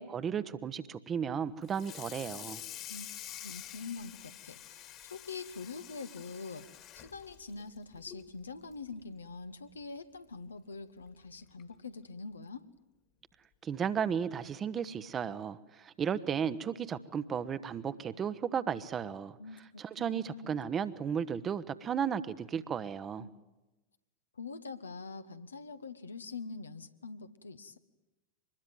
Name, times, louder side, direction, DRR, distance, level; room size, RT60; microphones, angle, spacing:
voice 1, 0.0-2.6 13.6-19.4 19.8-23.3, right 7 dB, 25° right, 14 dB, 1.1 m, -34 dB
Water tap faucet / Sink (filling or washing), 1.6-8.3 8.7-8.9 9.3-9.4 9.8-9.9 11.0-11.1 11.6-11.8, left 11 dB, 35° left, 2.1 m, -48 dB
voice 2, 3.4-6.7 6.9-12.6 19.4-20.6 23.2-23.3 24.4-27.8, left 4 dB, 75° left, 10 dB, 1.2 m, -44 dB
24.5 x 21.0 x 9.3 m, 1.0 s
figure-of-eight pair, 90°, 0 cm